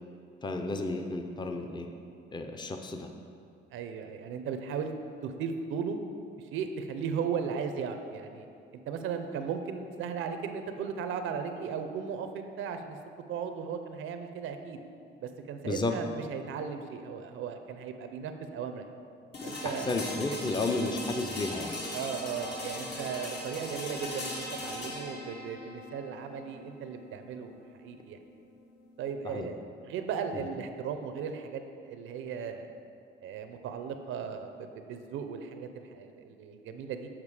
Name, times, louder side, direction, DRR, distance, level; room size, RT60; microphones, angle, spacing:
voice 1, 0.4-1.9 2.3-3.1 15.6-15.9 19.6-21.8 29.2-29.5 30.3-30.5, left 2 dB, 20° left, 5 dB, 0.6 m, -32 dB
voice 2, 3.7-4.9 5.2-6.0 6.5-8.5 8.9-13.0 13.3-14.8 15.2-18.9 19.4-19.9 21.9-28.2 29.0-32.7 33.2-37.1, right 6 dB, 85° right, 7 dB, 0.6 m, -36 dB
sound 1, 19.3-29.2, left 1 dB, 60° left, 1.5 m, -40 dB
7.4 x 4.7 x 4.8 m, 2.5 s
cardioid pair, 90°, 20 cm